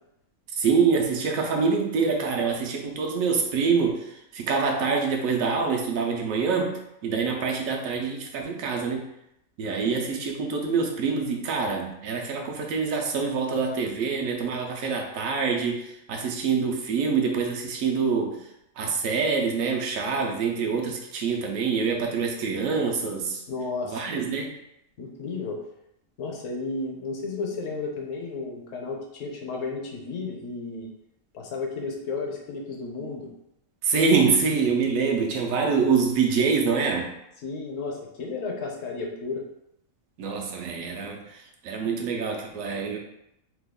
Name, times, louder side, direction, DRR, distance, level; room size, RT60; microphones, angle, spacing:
voice 1, 0.5-9.0 9.6-18.4 18.8-23.4 23.8-24.5 33.8-37.1 40.2-43.0, right 5 dB, 85° right, 2 dB, 1.0 m, -25 dB
voice 2, 23.5-24.0 25.0-25.6 26.2-30.9 31.3-33.3 37.4-39.4, left 3 dB, 75° left, 0 dB, 1.0 m, -33 dB
2.9 x 2.2 x 3.5 m, 0.82 s
omnidirectional pair, 1.4 m